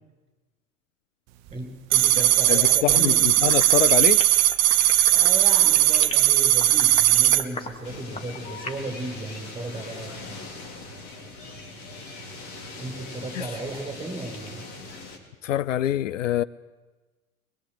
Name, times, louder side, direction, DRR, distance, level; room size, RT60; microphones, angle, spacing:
voice 1, 1.5-3.3 5.0-10.2 12.8-14.6, right 2 dB, 15° right, 6.8 m, -35 dB
sound 1, 1.9-7.4, right 14 dB, 40° right, 1.0 m, -18 dB
voice 2, 2.5-4.2 13.3-13.5 15.4-16.4, left 12 dB, 65° left, 0.6 m, -25 dB
sound 2, 3.2-8.8, left 2 dB, 15° left, 2.1 m, -38 dB
sound 3, 7.8-15.2, left 3 dB, 45° left, 4.1 m, -40 dB
22.5 x 22.0 x 8.1 m
figure-of-eight pair, 80°, 42 cm